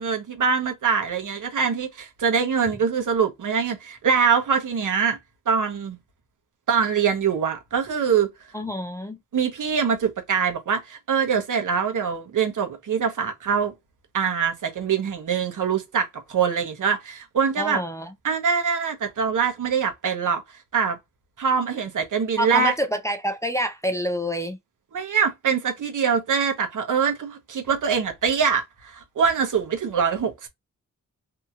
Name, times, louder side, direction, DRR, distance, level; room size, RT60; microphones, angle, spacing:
voice 1, 0.0-5.2 5.5-6.0 6.7-8.3 9.3-13.7 14.1-17.8 18.2-20.4 20.7-21.0 21.4-22.7 24.9-30.5, right 6 dB, 75° right, 0.9 m, -23 dB
voice 2, 8.5-9.2 17.6-18.1 22.4-24.6, equal, 10° left, 0.4 m, -27 dB
2.8 x 2.8 x 2.3 m
wide cardioid pair, 145°, 32 cm